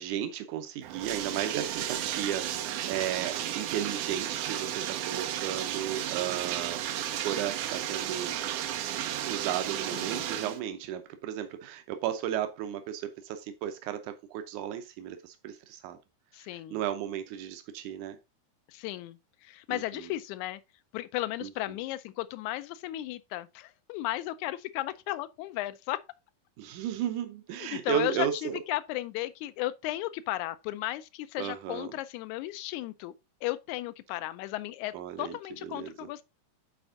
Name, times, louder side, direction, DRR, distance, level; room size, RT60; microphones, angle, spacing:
voice 1, 0.0-8.4 9.2-16.0 16.7-18.2 19.7-19.8 21.4-21.5 26.6-28.6 31.4-31.9 34.9-35.4 35.6-36.1, right 10 dB, 90° right, 2.2 m, -34 dB
Bathtub (filling or washing), 0.8-10.6, right 11 dB, 70° right, 1.6 m, -33 dB
voice 2, 9.9-10.6 16.3-16.8 18.7-20.6 20.9-26.0 27.6-33.1 33.4-36.2, left 16 dB, 85° left, 2.0 m, -35 dB
9.1 x 4.4 x 3.7 m
omnidirectional pair, 3.4 m